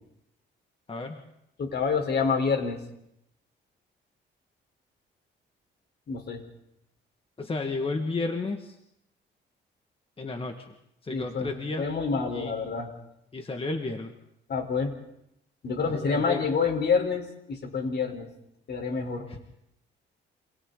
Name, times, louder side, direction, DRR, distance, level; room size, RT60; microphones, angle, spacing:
voice 1, 0.9-1.2 7.4-8.7 10.2-10.7 11.0-11.9 12.3-12.5 13.3-14.1 15.8-16.5 19.3-19.4, left 3 dB, 30° left, 4 dB, 2.1 m, -32 dB
voice 2, 1.6-2.8 6.1-6.4 11.1-11.5 11.8-12.9 14.5-14.9 15.6-18.3 18.7-19.3, left 5 dB, 55° left, 4 dB, 4.6 m, -27 dB
29.0 x 26.5 x 4.1 m, 0.79 s
cardioid pair, 90°, 20 cm